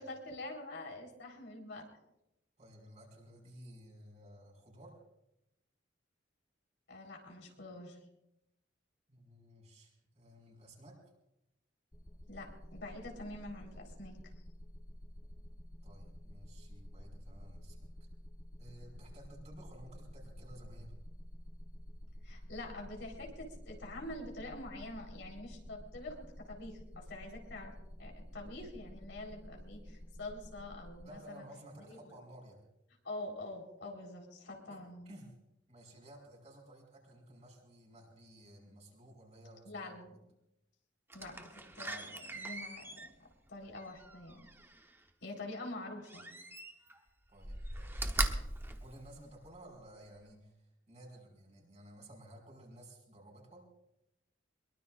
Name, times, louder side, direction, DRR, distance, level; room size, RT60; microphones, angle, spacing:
voice 1, 0.0-1.9 6.9-8.0 12.3-14.2 22.2-27.7 28.0-31.4 31.9-32.0 33.0-35.1 39.6-40.1 41.1-43.1 43.5-44.5 45.2-46.3, left 2 dB, 70° left, 0 dB, 4.2 m, -46 dB
voice 2, 2.6-5.0 9.1-11.0 15.8-17.9 18.6-20.9 31.0-32.6 34.7-34.8 35.1-35.3 35.7-40.0 47.3-48.4 48.8-53.6, right 1 dB, 35° right, 0 dB, 5.6 m, -55 dB
sound 1, 11.9-31.1, equal, 20° left, 1.1 m, -51 dB
Slam, 41.1-45.0 46.1-47.0 47.4-49.7 50.2-50.3, right 2 dB, 10° right, 1.0 m, -40 dB
23.5 x 22.5 x 2.5 m, 0.88 s
head